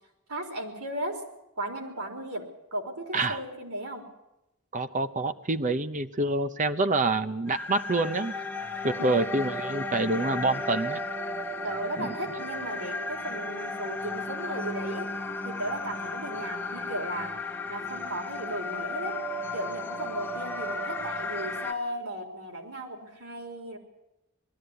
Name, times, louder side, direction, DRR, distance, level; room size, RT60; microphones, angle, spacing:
voice 1, 0.3-1.2 1.6-2.5 2.7-4.0 8.9-9.4 11.6-15.1 15.4-19.2 19.5-23.8, right 1 dB, 80° right, 2 dB, 4.2 m, -36 dB
voice 2, 4.7-8.3 8.8-11.0 12.0-12.1, right 2 dB, 35° right, 9 dB, 0.9 m, -27 dB
sound 1, 7.5-21.7, left 2 dB, 10° left, 1.6 m, -34 dB
21.0 x 13.0 x 9.8 m, 0.92 s
head